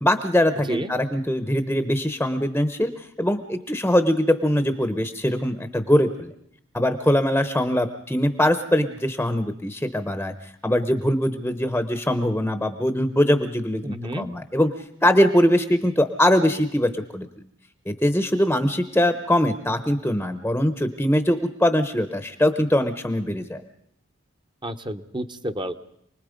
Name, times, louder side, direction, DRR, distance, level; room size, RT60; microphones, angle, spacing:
voice 1, 0.0-6.3 6.7-10.3 10.6-14.7 15.0-17.3 17.9-23.6, left 1 dB, 10° left, 9 dB, 0.9 m, -22 dB
voice 2, 13.8-14.3 24.6-25.7, right 1 dB, 25° right, 8 dB, 1.0 m, -30 dB
28.5 x 20.0 x 5.2 m, 0.73 s
head